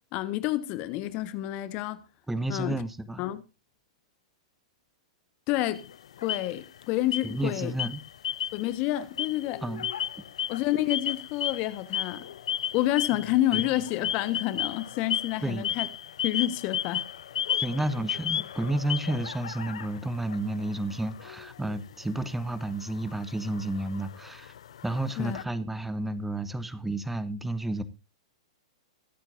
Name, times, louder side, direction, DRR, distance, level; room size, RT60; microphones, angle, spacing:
voice 1, 0.1-2.0 2.5-2.8 3.2-3.4 5.5-5.9 6.2-7.7 8.5-9.6 10.5-12.3 12.7-15.9 16.2-17.0 25.2-25.4, left 15 dB, 40° left, 1.2 m, -29 dB
voice 2, 2.3-3.2 7.2-8.0 9.6-9.9 13.5-13.6 15.4-15.6 17.6-24.5 24.8-27.8, right 1 dB, 5° right, 1.3 m, -31 dB
sound 1, 5.7-6.8 7.1-7.5 7.8-8.8 9.0-25.4, left 10 dB, 70° left, 0.6 m, -34 dB
22.0 x 8.9 x 2.6 m
hypercardioid pair, 115°, 3 cm